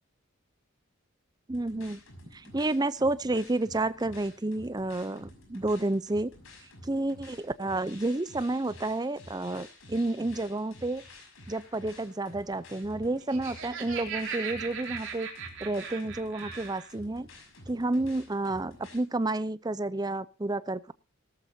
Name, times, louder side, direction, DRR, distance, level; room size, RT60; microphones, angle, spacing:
sound 1, 1.5-19.0, left 1 dB, 70° left, 5.7 m, -51 dB
voice 1, 1.5-2.0 2.3-6.3 6.8-11.0 11.5-15.3 15.6-17.3 17.7-20.9, right 2 dB, 20° right, 16 dB, 0.6 m, -30 dB
Laughter, 13.1-16.9, right 6 dB, 60° right, 3.9 m, -38 dB
17.5 x 13.5 x 2.8 m, 0.30 s
head